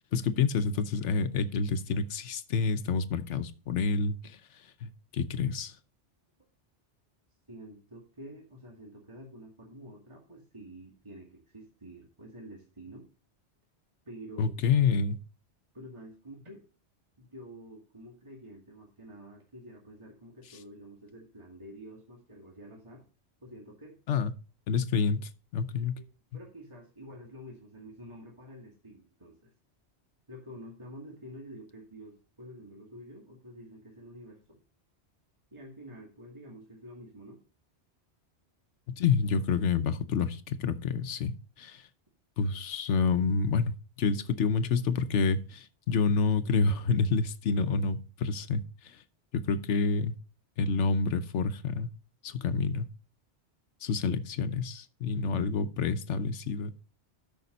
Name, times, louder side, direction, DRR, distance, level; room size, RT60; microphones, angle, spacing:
voice 1, 0.1-4.4 4.8-5.7 14.4-15.2 24.1-24.3 24.7-26.0 38.9-41.8 42.4-49.0 49.3-50.1 50.6-51.9 52.2-52.9 53.8-56.7, left 5 dB, 85° left, 1.1 m, -28 dB
voice 2, 7.5-13.1 14.1-14.5 15.7-16.7 17.2-23.0 23.4-24.0 26.0-26.1 26.3-29.5 30.3-34.6 35.5-37.4, equal, 25° right, 2.3 m, -48 dB
13.0 x 5.8 x 4.0 m
omnidirectional pair, 1.2 m